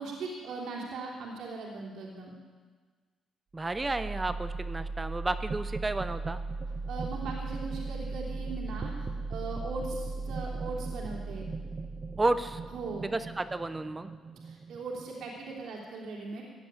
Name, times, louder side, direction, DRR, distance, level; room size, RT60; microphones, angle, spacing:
voice 1, 0.0-2.3 6.9-11.5 12.7-13.1 14.4-16.4, right 3 dB, 80° right, -2 dB, 3.2 m, -39 dB
voice 2, 3.5-6.4 12.2-12.6 13.1-14.1, right 2 dB, 20° right, 11 dB, 0.7 m, -31 dB
sound 1, 3.6-15.5, right 3 dB, 40° right, 1.0 m, -37 dB
15.5 x 8.4 x 9.9 m, 1.5 s
cardioid pair, 90°, 0 cm